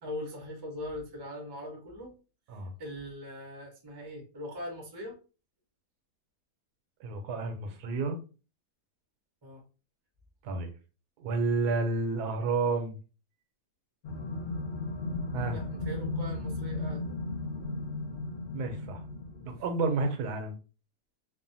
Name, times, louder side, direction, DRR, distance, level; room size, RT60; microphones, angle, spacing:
voice 1, 0.0-2.1 2.8-5.2 9.4-9.6 15.5-17.3 19.6-19.7, left 1 dB, 30° right, 0.4 m, -41 dB
voice 2, 7.0-8.2 10.4-10.7 11.2-13.0 15.3-15.6 18.5-19.0 19.4-20.6, right 3 dB, 80° right, 1.2 m, -30 dB
sound 1, 14.0-19.7, left 2 dB, 80° left, 0.5 m, -35 dB
3.0 x 2.1 x 2.6 m
omnidirectional pair, 1.7 m